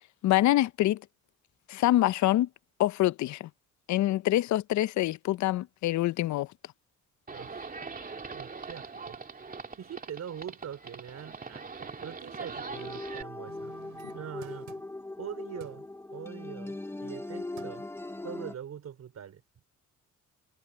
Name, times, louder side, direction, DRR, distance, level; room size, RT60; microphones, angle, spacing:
voice 1, 0.2-1.0 1.7-2.5 2.8-3.5 3.9-6.5, left 15 dB, 70° left, 0.6 m, -25 dB
Livestock farm animals working animals, 7.3-13.2, right 4 dB, 30° right, 2.8 m, -42 dB
voice 2, 7.3-7.7 8.3-9.2 9.8-13.7 14.1-14.7 15.2-17.9 18.2-19.4, right 9 dB, 60° right, 3.9 m, -43 dB
sound 1, 12.7-18.5, left 2 dB, 10° left, 0.8 m, -40 dB
sound 2, 13.5-15.2 15.6-15.9 17.1-17.3 17.6-17.9 18.4-18.5, right 13 dB, 85° right, 5.4 m, -52 dB
cardioid pair, 90°, 30 cm